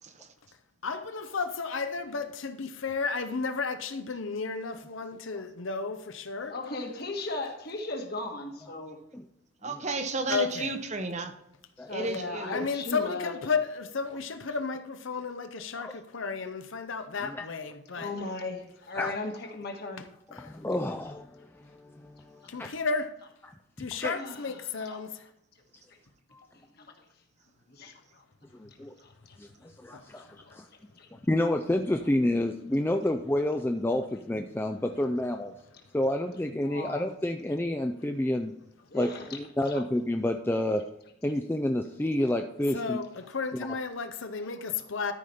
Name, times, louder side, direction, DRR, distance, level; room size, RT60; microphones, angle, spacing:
voice 1, 0.8-6.5 10.3-10.7 12.5-18.1 20.3-20.5 22.5-23.1 23.8-25.3 29.9-30.5 42.7-45.1, left 4 dB, 70° left, 0.7 m, -33 dB
voice 2, 6.5-8.9 11.9-13.3 17.9-20.0 24.1-25.0 26.8-26.9 27.7-28.2 29.0-29.4 30.2-30.5 31.0-31.1 36.6-37.0 38.9-39.4 39.7-39.8 44.6-44.7, left 2 dB, 50° left, 1.5 m, -37 dB
voice 3, 9.6-11.3 11.9-12.7, right 3 dB, 35° right, 0.8 m, -33 dB
voice 4, 20.3-22.7 23.4-23.5 23.8-24.1 26.3-26.5 28.5-28.9 29.4-30.7 31.1-35.5 35.9-38.5 38.9-40.9 41.2-43.0 43.5-43.7, left 1 dB, 10° left, 0.3 m, -29 dB
13.0 x 5.0 x 4.2 m
head